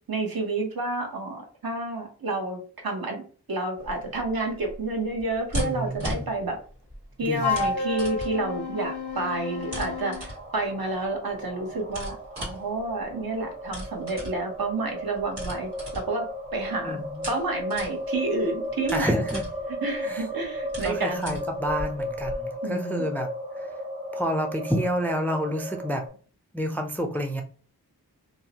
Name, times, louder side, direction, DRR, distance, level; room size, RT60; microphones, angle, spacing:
voice 1, 0.1-3.2 3.5-6.6 7.2-16.3 16.5-19.1 19.8-21.4 22.6-23.1, right 2 dB, 65° right, 1 dB, 0.9 m, -30 dB
sound 1, 3.8-22.4, equal, 85° right, 1.4 m, -39 dB
voice 2, 5.6-6.3 7.2-7.7 16.8-17.3 18.9-19.4 20.0-20.3 20.8-23.3 23.6-23.7 24.1-26.0 26.5-27.4, equal, 5° left, 4 dB, 0.3 m, -29 dB
Wind instrument woodwind instrument, 7.4-10.3, left 4 dB, 85° left, 0.6 m, -30 dB
sound 2, 8.3-26.1, left 1 dB, 20° right, 0.8 m, -35 dB
2.6 x 2.0 x 2.8 m, 0.41 s
wide cardioid pair, 45°, 39 cm